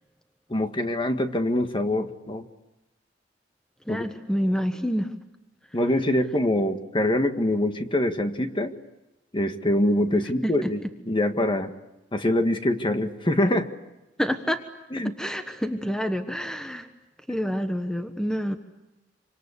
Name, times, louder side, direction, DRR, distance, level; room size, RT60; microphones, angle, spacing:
voice 1, 0.5-2.4 3.9-4.0 5.7-8.7 9.3-11.7 12.1-13.7 14.9-15.1, left 1 dB, 25° left, 7 dB, 1.7 m, -24 dB
voice 2, 3.9-5.1 10.6-10.7 14.2-14.6 15.2-16.9 17.3-18.6, equal, 5° left, 6 dB, 1.3 m, -27 dB
27.0 x 26.0 x 8.4 m, 1.0 s
head